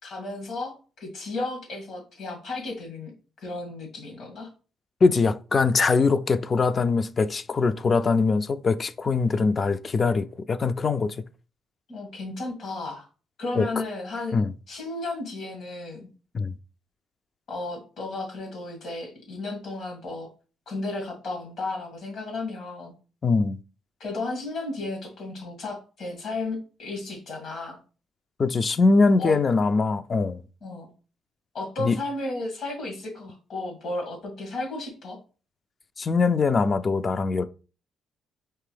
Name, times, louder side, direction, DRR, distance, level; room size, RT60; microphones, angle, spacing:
voice 1, 0.0-3.1 3.4-4.5 11.9-13.1 13.4-14.3 14.7-16.1 17.5-20.3 20.7-22.9 24.0-27.8 29.2-29.4 30.6-30.9 31.5-35.2, left 2 dB, 70° left, 2.1 m, -33 dB
voice 2, 5.0-11.2 13.6-13.7 14.3-14.5 16.3-16.5 23.2-23.6 28.4-30.4 31.8-32.0 36.0-37.4, left 4 dB, 40° left, 0.3 m, -22 dB
4.5 x 3.3 x 3.3 m
cardioid pair, 90°, 0 cm